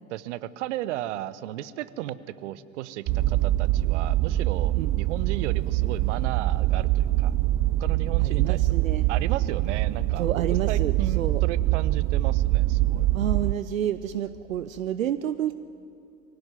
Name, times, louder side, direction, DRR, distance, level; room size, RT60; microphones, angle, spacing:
voice 1, 0.1-7.3 7.8-8.8 9.1-13.1, right 13 dB, 60° right, 17 dB, 1.0 m, -35 dB
sound 1, 3.1-13.5, right 15 dB, 30° right, 0.5 m, -24 dB
voice 2, 8.2-9.1 10.2-11.4 13.1-15.5, right 10 dB, 75° right, 14 dB, 0.7 m, -29 dB
23.5 x 17.0 x 9.9 m, 2.7 s
figure-of-eight pair, 85°, 40 cm